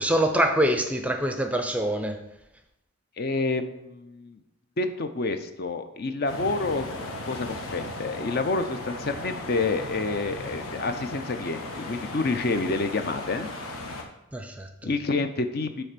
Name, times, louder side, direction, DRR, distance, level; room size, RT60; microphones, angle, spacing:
voice 1, 0.0-2.2 14.3-14.9, right 1 dB, 5° right, 6 dB, 0.5 m, -25 dB
voice 2, 3.2-4.4 4.8-6.9 7.3-13.5 14.8-15.8, left 3 dB, 45° left, 9 dB, 0.5 m, -28 dB
sound 1, 6.3-14.0, left 2 dB, 80° left, 1.2 m, -36 dB
8.7 x 3.3 x 6.6 m, 0.88 s
head